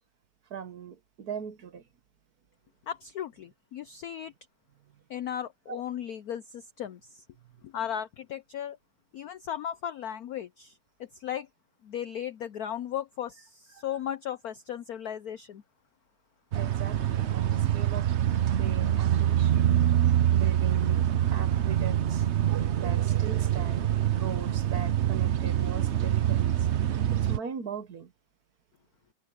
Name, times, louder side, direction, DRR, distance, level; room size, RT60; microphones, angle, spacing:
voice 1, 0.5-1.8 5.7-5.8 13.7-14.0 16.5-18.1 18.6-19.7 20.3-22.3 22.8-23.9 24.2-26.7 27.1-28.1, right 7 dB, 50° right, 1.4 m, -40 dB
voice 2, 2.9-4.3 5.1-7.2 7.6-8.8 9.1-10.8 11.2-11.5 11.8-15.6, left 10 dB, 70° left, 0.8 m, -36 dB
sound 1, 16.5-27.4, right 11 dB, 75° right, 0.6 m, -25 dB
omnidirectional pair, 2.3 m